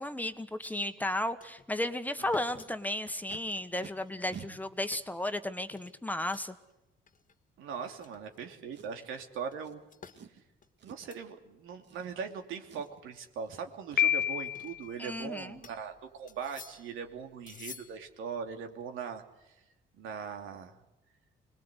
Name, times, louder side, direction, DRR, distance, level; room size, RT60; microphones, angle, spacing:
voice 1, 0.0-6.5 15.0-15.6, left 1 dB, 10° left, 9 dB, 1.5 m, -34 dB
sound 1, 0.6-1.1 1.4-1.7 2.0-4.4 4.6-5.1 5.7-6.7 7.1-7.3 7.8-8.6 9.5-10.2 10.6-11.3 11.6-11.7 12.1-12.2 12.8-13.2 14.2-15.2 15.6-15.9 16.3-17.0 17.5-18.1, left 6 dB, 40° left, 1.7 m, -52 dB
Packing tape duct tape, 2.8-3.4 3.8-3.9 4.3-4.5 5.3-5.4 8.7-9.1 9.6-9.8 10.1-10.4 10.8-11.2 11.8-12.4 12.6-13.1 13.5-13.6 13.9-14.3 17.3-17.4 17.7-17.9 18.3-18.4 18.7-19.0 19.2-19.3, right 7 dB, 65° right, 3.0 m, -50 dB
voice 2, 7.6-9.8 10.8-19.6 20.0-20.8, right 6 dB, 90° right, 4 dB, 2.9 m, -40 dB
Piano, 14.0-14.9, left 10 dB, 55° left, 0.9 m, -28 dB
25.5 x 20.5 x 8.3 m, 0.97 s
cardioid pair, 90°, 20 cm